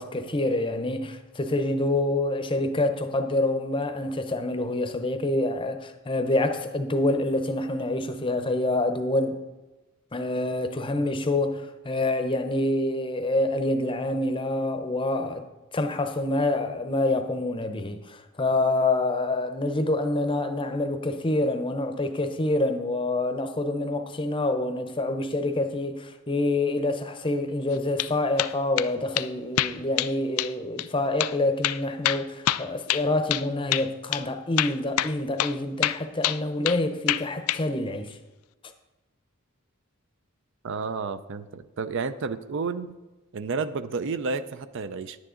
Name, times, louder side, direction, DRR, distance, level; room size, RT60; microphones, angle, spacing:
voice 1, 0.0-9.4 10.1-15.4 15.7-38.2, left 2 dB, 25° left, 0.7 m, -27 dB
sound 1, 27.7-28.1 28.4-28.9 29.2-29.3 29.6-30.1 30.4-30.5 30.8-30.9 31.2-31.3 31.6-33.5 33.7-33.9 34.1-34.2 34.6-35.6 35.8-36.8 37.1-37.6, left 13 dB, 75° left, 0.3 m, -26 dB
voice 2, 40.6-42.9 43.3-45.2, right 4 dB, 55° right, 0.4 m, -31 dB
10.5 x 9.4 x 3.8 m
head